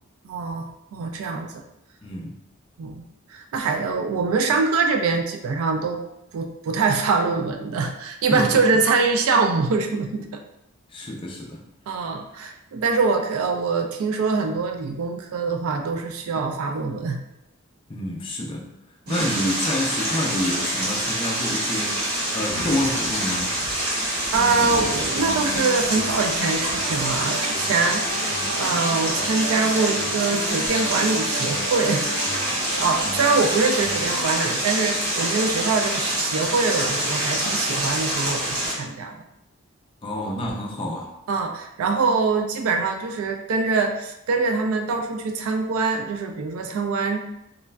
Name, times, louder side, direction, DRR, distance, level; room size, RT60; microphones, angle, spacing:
voice 1, 0.2-1.6 2.8-3.0 3.3-6.0 6.3-10.3 11.9-17.2 19.1-19.3 24.3-32.1 32.8-39.1 41.3-47.2, right 4 dB, 75° right, 3 dB, 0.3 m, -24 dB
voice 2, 2.0-2.4 8.3-8.4 10.9-11.6 17.9-18.7 19.1-22.0 22.3-23.6 40.0-41.1, left 1 dB, 25° left, 0 dB, 0.4 m, -28 dB
sound 1, 19.1-38.7, right 1 dB, 45° right, 0.9 m, -26 dB
sound 2, 24.3-34.3, equal, 55° left, 0.7 m, -34 dB
3.1 x 2.4 x 2.2 m, 0.85 s
head